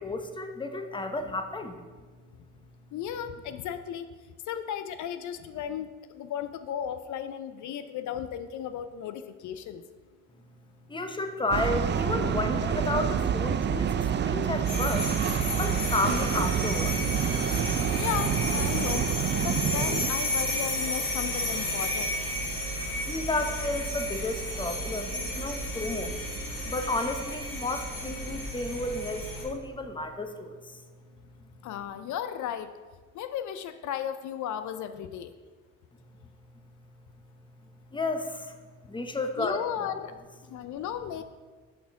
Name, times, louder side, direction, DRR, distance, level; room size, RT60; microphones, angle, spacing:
voice 1, 0.0-1.8 10.9-15.1 15.6-17.0 23.1-26.2 26.6-30.8 37.9-38.5 38.9-39.9, left 2 dB, 15° left, 7 dB, 0.8 m, -32 dB
voice 2, 2.9-4.1 4.5-9.8 18.0-19.1 19.4-22.1 31.6-32.7 33.1-35.3 39.4-40.1 40.5-41.2, left 9 dB, 65° left, 10 dB, 0.5 m, -35 dB
sound 1, 11.5-20.1, right 8 dB, 35° right, 0.4 m, -28 dB
sound 2, 14.6-29.4, left 1 dB, 85° left, 2.0 m, -32 dB
5.9 x 4.3 x 5.7 m, 1.4 s
supercardioid pair, 65°, 32 cm